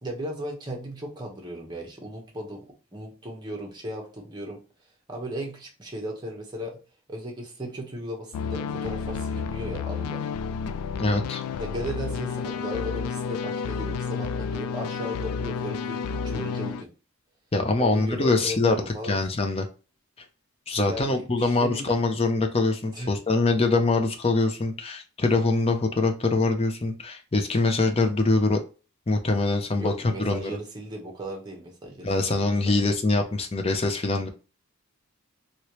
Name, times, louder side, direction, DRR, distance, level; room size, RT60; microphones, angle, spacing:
voice 1, 0.0-2.6 2.9-4.6 5.1-6.8 7.1-10.3 11.6-16.9 17.8-19.2 20.9-21.9 22.9-23.1 29.8-32.7, equal, 20° right, 0 dB, 1.0 m, -36 dB
sound 1, 8.3-16.8, left 5 dB, 85° left, 0.3 m, -31 dB
voice 2, 11.0-11.4 17.5-18.8 19.1-19.7 20.7-28.6 29.1-29.9 30.2-30.6 32.0-34.3, left 2 dB, 25° left, 5 dB, 0.5 m, -24 dB
3.1 x 2.9 x 2.9 m, 0.34 s
head